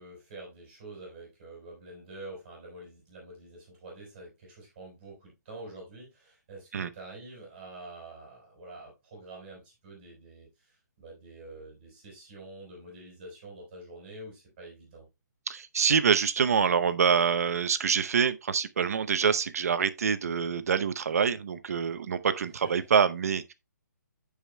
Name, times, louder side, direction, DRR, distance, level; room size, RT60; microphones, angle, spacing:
voice 1, 0.0-15.1 22.6-22.7, right 2 dB, 30° right, 4.8 m, -47 dB
voice 2, 15.5-23.5, right 6 dB, 55° right, 0.7 m, -26 dB
14.5 x 5.0 x 2.2 m
hypercardioid pair, 170°, 10 cm